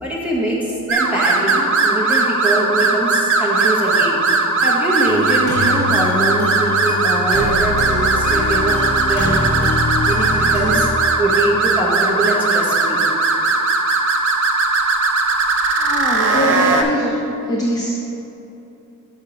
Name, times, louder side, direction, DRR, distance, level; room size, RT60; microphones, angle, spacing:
voice 1, 0.0-4.2 4.6-8.8 9.1-9.5 10.0-10.9 11.2-13.0, right 1 dB, 5° right, -5 dB, 1.1 m, -22 dB
sound 1, 0.9-16.8, right 3 dB, 55° right, 0.7 m, -18 dB
sound 2, 5.1-10.9, left 2 dB, 75° left, 1.4 m, -25 dB
voice 2, 15.8-17.9, right 1 dB, 15° left, -4 dB, 0.5 m, -22 dB
5.6 x 5.5 x 5.0 m, 2.8 s
head